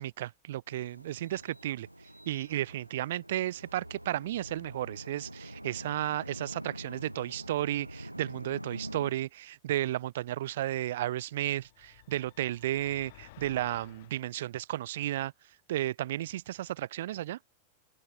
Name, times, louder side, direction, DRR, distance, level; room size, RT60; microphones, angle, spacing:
voice 1, 0.0-1.9 2.3-15.3 15.7-17.4, right 14 dB, 55° right, 0.5 m, -33 dB
sound 1, 0.7-9.1, right 1 dB, 90° right, 2.7 m, -45 dB
sound 2, 11.3-14.2, left 19 dB, 50° left, 7.7 m, -55 dB
figure-of-eight pair, 90°, 0 cm